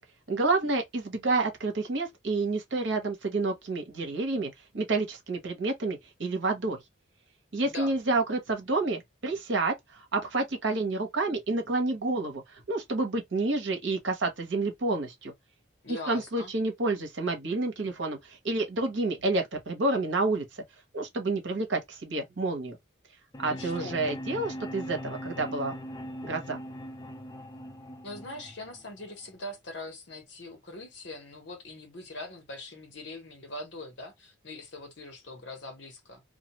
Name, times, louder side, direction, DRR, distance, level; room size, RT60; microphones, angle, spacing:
voice 1, 0.3-6.8 7.5-15.3 15.9-20.4 20.9-22.8 23.4-25.7 26.2-26.6, right 3 dB, 70° right, 0.9 m, -29 dB
voice 2, 15.8-16.5 23.5-24.1 28.0-36.2, left 2 dB, 65° left, 1.0 m, -42 dB
sound 1, 23.3-29.3, equal, 20° left, 0.4 m, -40 dB
2.4 x 2.3 x 2.9 m
head